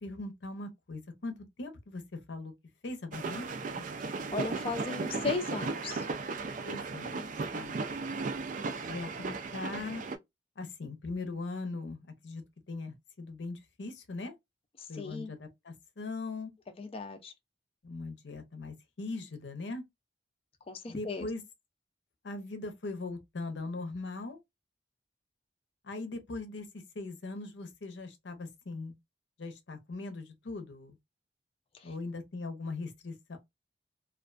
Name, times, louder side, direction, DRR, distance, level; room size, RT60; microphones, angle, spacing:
voice 1, 0.0-2.0 2.3-2.5 2.8-3.5 3.8-3.9 6.6-7.2 7.5-7.7 8.8-10.0 10.6-12.4 12.7-14.3 14.9-16.5 17.8-19.8 20.9-21.4 22.2-24.4 25.8-28.9 29.4-31.0 31.8-33.4, left 3 dB, 80° left, 0.7 m, -40 dB
sound 1, 3.1-10.2, right 4 dB, 45° right, 0.4 m, -36 dB
voice 2, 4.3-6.0 14.9-15.3 16.8-17.3 20.7-21.3 31.8-31.9, left 4 dB, 30° left, 0.4 m, -36 dB
2.4 x 2.2 x 2.4 m
head